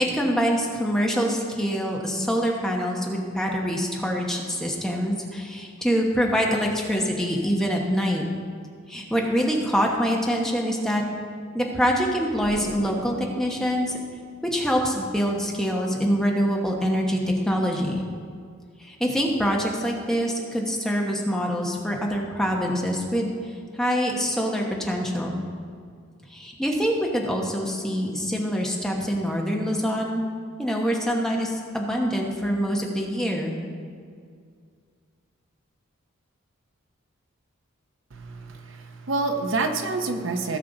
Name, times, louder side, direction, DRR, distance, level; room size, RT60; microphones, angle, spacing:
voice 1, 0.0-8.2 8.9-11.0 11.5-14.0 14.5-18.0 18.8-23.3 23.7-25.4 26.3-30.2 30.6-33.5, equal, 5° left, -1 dB, 1.0 m, -25 dB
Explosion, 12.4-15.1, left 1 dB, 75° left, 1.3 m, -41 dB
voice 2, 38.1-40.6, right 3 dB, 60° right, 6 dB, 0.7 m, -28 dB
17.0 x 5.7 x 3.9 m, 2.1 s
head